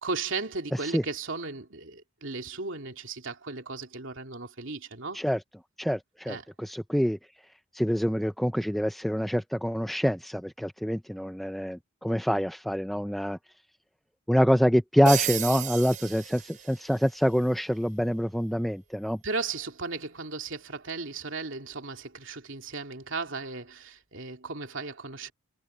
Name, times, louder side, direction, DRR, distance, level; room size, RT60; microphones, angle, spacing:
voice 1, 0.0-5.2 6.3-6.4 19.2-25.3, right 4 dB, 65° right, 2.9 m, -36 dB
voice 2, 5.8-7.2 7.7-13.4 14.3-19.2, equal, ahead, 0.3 m, -26 dB
sound 1, 15.1-17.1, right 9 dB, 40° right, 4.5 m, -33 dB
head